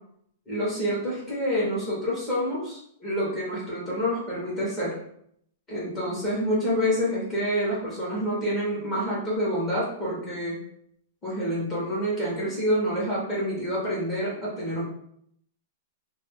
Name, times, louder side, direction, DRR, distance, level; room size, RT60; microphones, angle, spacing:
voice 1, 0.5-5.0 5.7-10.6 11.2-14.8, equal, 20° left, -8 dB, 1.4 m, -27 dB
2.9 x 2.1 x 3.6 m, 0.69 s
hypercardioid pair, 150°, 0 cm